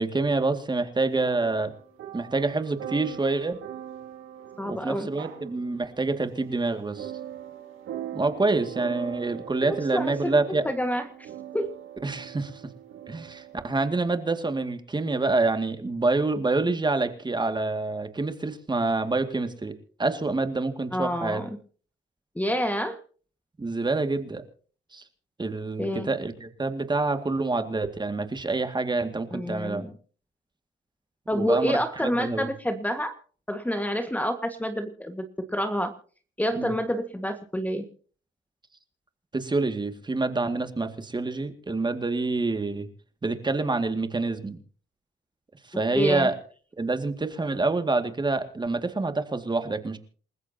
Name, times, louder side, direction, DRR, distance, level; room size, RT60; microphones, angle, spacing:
voice 1, 0.0-1.7 2.1-3.6 4.6-7.1 8.1-10.6 12.0-12.6 13.1-21.4 23.6-24.4 24.9-25.0 25.4-29.8 31.3-32.5 36.5-36.7 39.3-42.9 43.2-44.6 45.7-46.3 46.8-50.0, right 3 dB, 20° right, 7 dB, 2.2 m, -27 dB
sound 1, 1.2-14.4, right 10 dB, 85° right, 3.5 m, -42 dB
voice 2, 4.6-5.1 9.6-11.1 11.5-11.7 20.9-21.5 22.4-23.0 25.8-26.1 29.3-29.9 31.3-33.2 33.5-35.3 35.5-35.9 36.4-37.8 45.9-46.3, equal, 10° left, 7 dB, 1.7 m, -28 dB
28.5 x 14.5 x 2.9 m, 0.43 s
cardioid pair, 90°, 20 cm